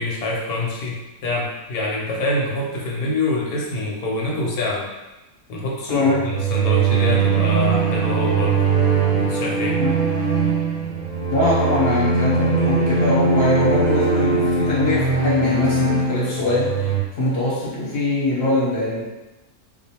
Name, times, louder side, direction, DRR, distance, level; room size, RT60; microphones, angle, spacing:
voice 1, 0.0-4.9 5.5-8.6 9.1-9.8, left 2 dB, 80° left, -3 dB, 1.1 m, -25 dB
voice 2, 5.9-6.2 9.8-10.0 11.3-19.0, left 1 dB, 50° left, -7 dB, 0.8 m, -22 dB
sound 1, 6.0-17.0, right 4 dB, 35° right, 0.6 m, -20 dB
2.5 x 2.2 x 2.8 m, 1.0 s
omnidirectional pair, 1.6 m